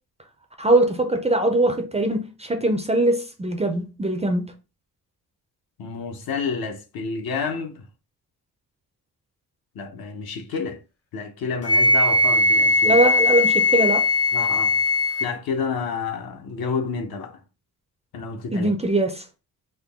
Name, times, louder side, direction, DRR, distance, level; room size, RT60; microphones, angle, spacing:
voice 1, 0.6-4.5 12.8-14.1 18.5-19.2, right 1 dB, 15° right, 0.4 m, -21 dB
voice 2, 5.8-7.8 9.7-10.8 11.1-13.0 14.3-14.8 15.2-17.4 18.1-18.7, left 5 dB, 65° left, 0.8 m, -29 dB
Wind instrument woodwind instrument, 11.6-15.3, left 2 dB, 40° left, 0.6 m, -19 dB
3.7 x 2.2 x 3.4 m
cardioid pair, 125°, 39 cm